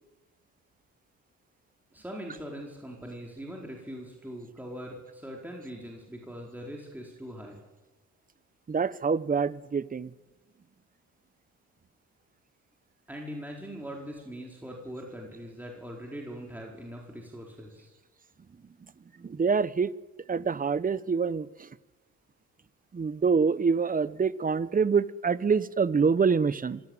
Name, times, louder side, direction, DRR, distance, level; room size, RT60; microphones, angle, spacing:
voice 1, 1.9-7.6 13.1-17.9, equal, 5° right, 4.6 m, -41 dB
voice 2, 8.7-10.1 19.2-19.9 20.3-21.7 22.9-26.8, right 5 dB, 30° right, 0.9 m, -26 dB
24.5 x 16.0 x 9.2 m
cardioid pair, 90°, 30 cm